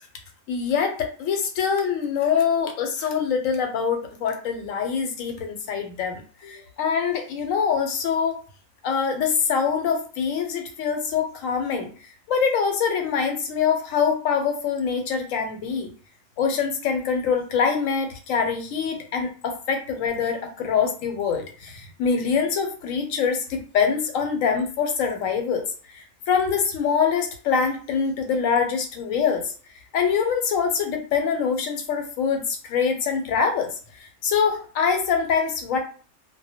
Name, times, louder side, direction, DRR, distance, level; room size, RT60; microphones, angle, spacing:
voice 1, 0.5-8.4 8.8-11.9 12.3-15.9 16.4-25.7 25.9-29.5 29.9-33.7 34.0-35.8, left 6 dB, 85° left, 4 dB, 1.0 m, -24 dB
2.1 x 2.1 x 2.7 m, 0.41 s
omnidirectional pair, 1.3 m